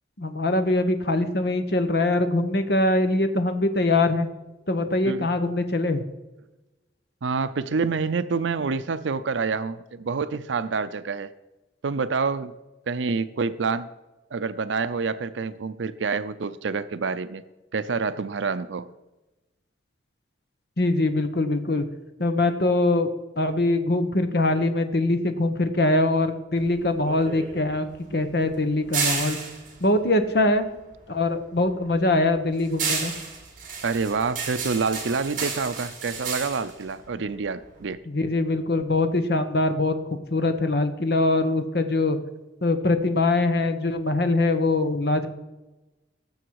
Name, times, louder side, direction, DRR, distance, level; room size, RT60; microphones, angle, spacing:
voice 1, 0.2-4.3 4.7-6.0 20.8-21.8 22.2-23.1 23.4-29.4 29.8-30.7 31.1-33.1 38.1-40.0 40.3-42.2 42.6-45.3, left 2 dB, 60° left, 8 dB, 1.2 m, -23 dB
voice 2, 7.2-11.3 11.8-12.5 12.9-13.9 14.3-17.4 17.7-18.9 33.8-38.0, right 4 dB, 90° right, 13 dB, 0.5 m, -27 dB
sound 1, 26.6-31.1 31.4-37.9, right 5 dB, 45° right, 3.2 m, -32 dB
18.5 x 7.0 x 4.7 m, 1.1 s
head